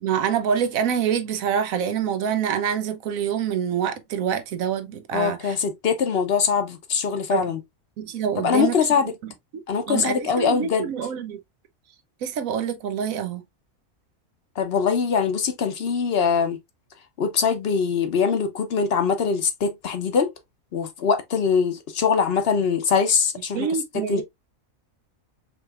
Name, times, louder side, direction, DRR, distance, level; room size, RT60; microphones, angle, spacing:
voice 1, 0.0-5.4 7.3-7.4 8.0-8.8 9.9-11.4 12.2-13.4 23.5-24.2, right 8 dB, 80° right, 1.1 m, -26 dB
voice 2, 5.1-7.6 8.4-9.1 9.7-10.9 14.6-16.6 17.2-20.3 20.7-23.7 23.9-24.2, left 6 dB, 55° left, 0.8 m, -22 dB
4.7 x 3.0 x 2.4 m
omnidirectional pair, 1.4 m